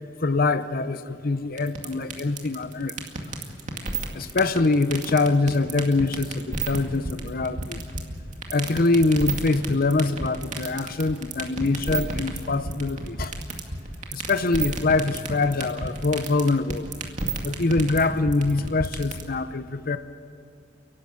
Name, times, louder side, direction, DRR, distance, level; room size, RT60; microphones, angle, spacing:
voice 1, 0.2-2.9 4.1-7.8 8.5-13.3 14.1-16.9 17.4-20.0, left 3 dB, 50° left, 12 dB, 0.8 m, -24 dB
sound 1, 1.6-19.2, right 3 dB, 40° right, 2.2 m, -30 dB
29.5 x 11.5 x 8.7 m, 2.5 s
head